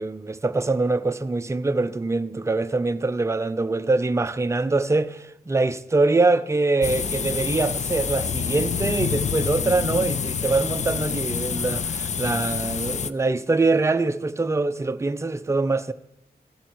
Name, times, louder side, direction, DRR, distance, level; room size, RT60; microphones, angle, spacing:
voice 1, 0.0-15.9, right 3 dB, 15° right, 0.4 m, -24 dB
sound 1, 6.8-13.1, left 7 dB, 45° left, 0.4 m, -27 dB
15.0 x 11.0 x 4.6 m
wide cardioid pair, 170°, 17 cm